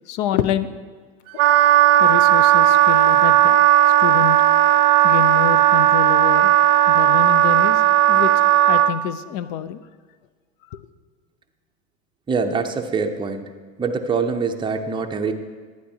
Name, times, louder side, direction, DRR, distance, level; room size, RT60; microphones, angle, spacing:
voice 1, 0.1-0.7 2.0-3.6 4.0-4.4 5.0-6.5 6.9-7.8 8.1-8.3 8.7-9.8 10.7-10.8, left 11 dB, 55° left, 14 dB, 0.6 m, -26 dB
Wind instrument woodwind instrument, 1.4-8.9, right 12 dB, 65° right, 0.5 m, -15 dB
voice 2, 12.3-13.5 13.8-15.3, right 5 dB, 10° right, 4 dB, 0.6 m, -24 dB
11.5 x 9.2 x 2.8 m, 1.5 s
hypercardioid pair, 105°, 38 cm